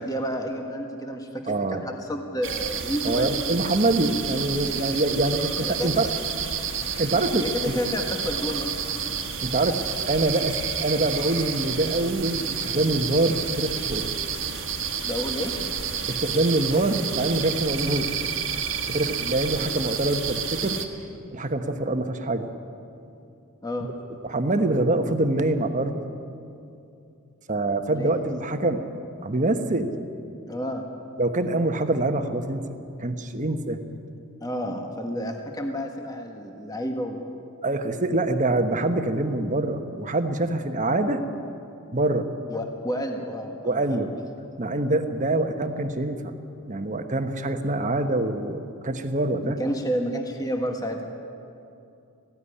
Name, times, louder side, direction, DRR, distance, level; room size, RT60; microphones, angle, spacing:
voice 1, 0.0-3.5 5.6-5.9 7.4-8.7 15.0-15.5 23.6-23.9 27.9-28.1 30.5-30.8 34.4-37.2 42.5-44.0 49.4-51.0, equal, 15° left, 3 dB, 1.5 m, -30 dB
voice 2, 1.5-1.9 3.0-6.1 7.0-7.7 9.4-14.1 16.1-18.1 18.9-20.8 21.3-22.5 23.8-23.9 24.2-26.0 27.5-28.8 29.2-29.9 31.2-32.6 33.0-33.8 37.6-41.2 41.9-42.3 43.6-44.1 44.6-46.3 46.6-49.6, right 2 dB, 35° right, 7 dB, 1.2 m, -25 dB
sound 1, 2.4-20.9, right 7 dB, 60° right, 1.6 m, -30 dB
18.5 x 16.0 x 10.0 m, 2.6 s
head